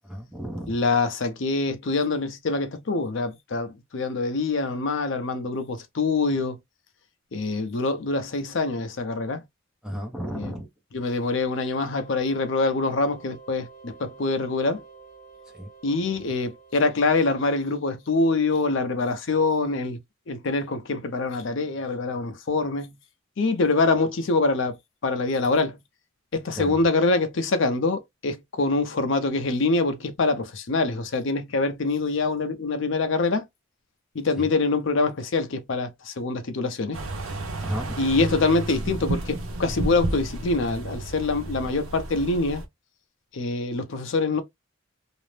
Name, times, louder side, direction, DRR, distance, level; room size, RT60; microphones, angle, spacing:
voice 1, 0.1-0.8 9.8-10.7 15.5-15.7 26.6-26.8 34.4-34.5 37.6-38.0, equal, 5° right, 0.6 m, -33 dB
voice 2, 0.7-6.6 7.3-9.4 10.3-10.5 10.9-14.8 15.8-20.0 20.3-22.9 23.4-24.8 25.0-25.8 26.3-33.5 34.1-37.0 38.0-42.6 43.3-44.4, left 3 dB, 60° left, 0.5 m, -25 dB
sound 1, 11.7-18.3, right 4 dB, 35° left, 1.0 m, -50 dB
sound 2, 36.9-42.7, right 2 dB, 85° right, 0.7 m, -32 dB
2.5 x 2.0 x 3.1 m
head